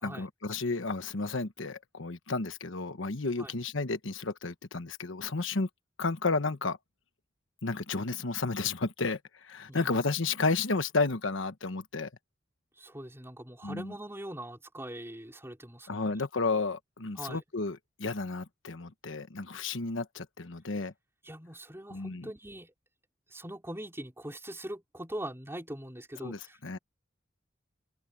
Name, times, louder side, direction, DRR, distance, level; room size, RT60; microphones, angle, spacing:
voice 1, 0.0-5.7 6.0-6.8 7.6-12.1 13.6-13.9 15.9-20.9 21.9-22.3 26.2-26.8, left 3 dB, 70° left, 1.2 m, -32 dB
voice 2, 9.7-10.0 12.8-16.2 17.2-17.4 21.2-22.7 23.3-26.8, right 1 dB, 15° right, 4.6 m, -42 dB
open air
head